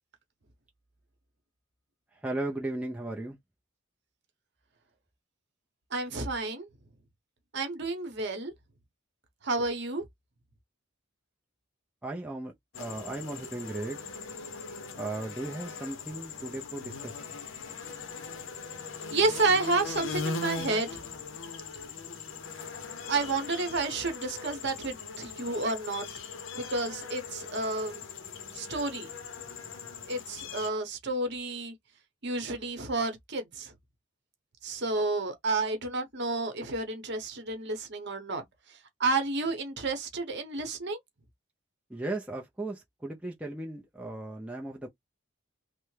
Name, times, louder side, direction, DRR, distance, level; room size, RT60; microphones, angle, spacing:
voice 1, 2.1-3.4 12.0-12.5 12.8-14.0 15.0-17.2 41.9-44.9, right 2 dB, 5° right, 0.4 m, -36 dB
voice 2, 5.9-6.7 7.5-8.5 9.4-10.0 19.1-21.0 23.1-26.1 26.5-28.0 28.5-29.1 30.1-31.7 32.2-33.7 34.6-38.4 39.0-41.0, right 3 dB, 50° right, 0.9 m, -30 dB
sound 1, 12.7-30.7, left 5 dB, 60° left, 0.6 m, -40 dB
3.3 x 2.0 x 3.2 m
head